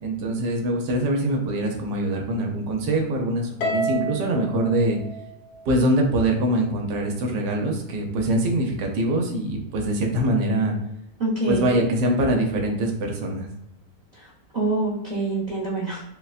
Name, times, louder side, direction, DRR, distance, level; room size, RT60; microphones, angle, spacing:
voice 1, 0.0-5.0 5.7-10.7 11.5-13.5, right 1 dB, 90° right, 1 dB, 1.3 m, -23 dB
Harp, 3.6-6.1, right 2 dB, 75° left, 1.1 m, -30 dB
voice 2, 11.2-11.8 14.5-16.0, right 2 dB, 45° right, -7 dB, 0.5 m, -25 dB
4.0 x 2.1 x 2.3 m, 0.82 s
omnidirectional pair, 1.8 m